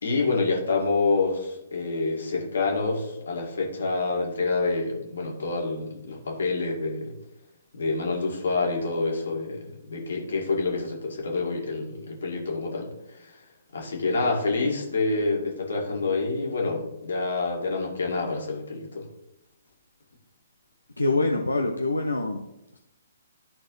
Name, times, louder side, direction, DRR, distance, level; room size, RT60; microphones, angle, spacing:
voice 1, 0.0-7.1 7.7-13.4 13.7-19.1, left 3 dB, 65° left, 0 dB, 2.0 m, -27 dB
voice 2, 21.0-22.5, left 2 dB, 90° left, 2 dB, 0.7 m, -25 dB
12.0 x 4.0 x 3.2 m, 0.86 s
figure-of-eight pair, 130°, 0 cm